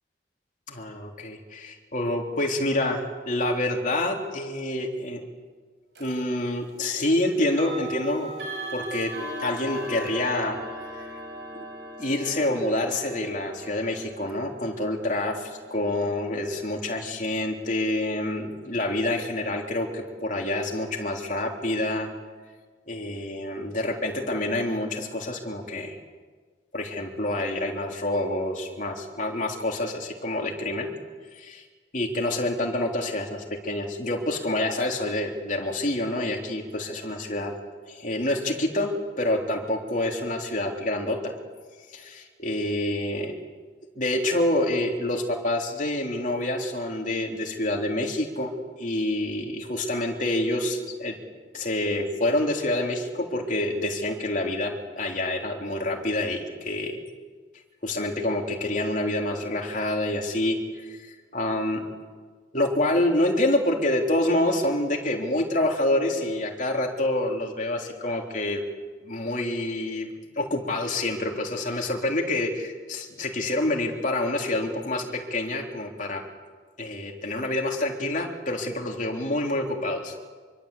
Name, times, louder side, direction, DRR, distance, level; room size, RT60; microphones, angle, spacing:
voice 1, 0.7-5.2 6.0-8.3 8.7-9.1 9.4-10.6 10.9-11.1 12.0-22.1 22.9-26.0 26.7-30.9 31.3-31.6 31.9-37.5 37.9-41.3 41.9-43.4 44.0-51.2 51.5-57.0 57.8-61.8 62.5-68.6 69.0-76.2 76.8-80.1, left 1 dB, 40° left, 2 dB, 3.5 m, -27 dB
sound 1, 5.9-6.2 7.5-18.3, equal, 60° right, 6.5 m, -39 dB
26.0 x 24.0 x 8.5 m, 1.5 s
head